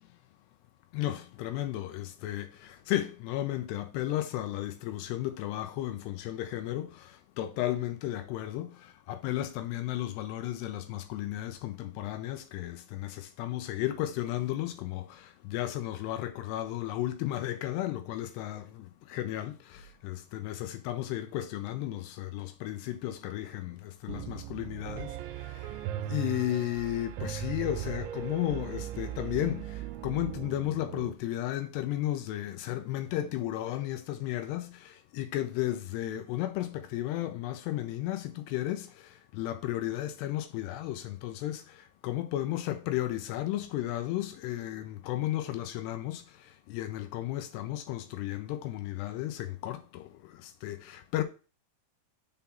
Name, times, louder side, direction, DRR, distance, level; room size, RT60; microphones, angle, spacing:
voice 1, 0.9-25.8 26.1-51.2, left 14 dB, 80° left, 2.6 m, -34 dB
Piano, 24.1-31.1, right 11 dB, 85° right, 2.9 m, -38 dB
7.0 x 3.7 x 5.6 m
omnidirectional pair, 5.1 m